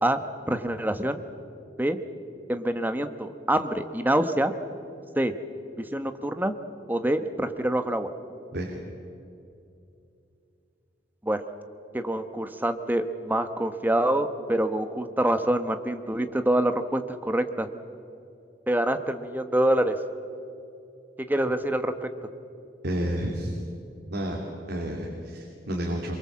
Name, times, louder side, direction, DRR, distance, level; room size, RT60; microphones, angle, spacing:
voice 1, 0.5-1.2 1.8-2.0 2.5-4.5 5.1-5.3 5.9-6.5 6.9-8.1 11.2-11.4 11.9-17.7 18.7-19.9 21.3-22.1, right 1 dB, 10° right, 8 dB, 1.1 m, -26 dB
voice 2, 22.8-23.5 24.1-24.4 24.7-26.2, right 1 dB, 60° right, 0 dB, 2.8 m, -30 dB
23.5 x 23.0 x 7.4 m, 2.6 s
head